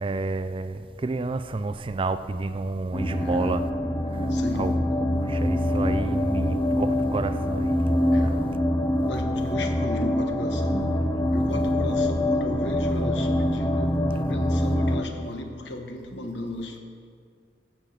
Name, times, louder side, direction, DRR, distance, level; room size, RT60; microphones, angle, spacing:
voice 1, 0.0-3.6 4.5-4.8 5.3-7.7, right 3 dB, 30° right, 12 dB, 0.4 m, -30 dB
sound 1, 2.9-15.0, left 1 dB, 20° left, 0.6 m, -24 dB
voice 2, 4.3-4.7 8.1-8.4 9.0-10.8 11.3-13.9 14.3-16.8, left 1 dB, 70° left, 4 dB, 1.3 m, -35 dB
15.5 x 5.8 x 6.5 m, 2.1 s
head